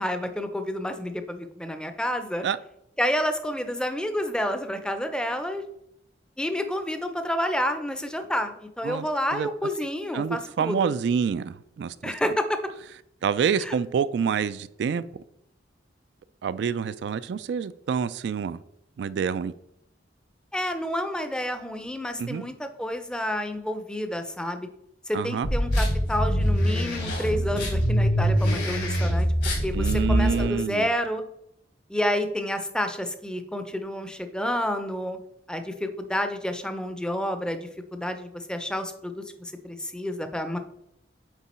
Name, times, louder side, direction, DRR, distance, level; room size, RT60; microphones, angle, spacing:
voice 1, 0.0-2.4 3.0-5.6 6.4-10.9 12.0-12.6 13.6-13.8 20.5-24.7 25.1-29.3 29.6-31.2 31.9-35.2 35.5-40.6, equal, 5° left, 0.5 m, -29 dB
voice 2, 10.1-12.1 13.2-15.0 16.4-18.6 19.0-19.5 22.2-22.4 25.1-25.5 29.7-30.9, right 6 dB, 65° right, 0.3 m, -27 dB
sound 1, 25.4-30.4, equal, 75° left, 2.8 m, -24 dB
8.3 x 3.8 x 4.3 m
head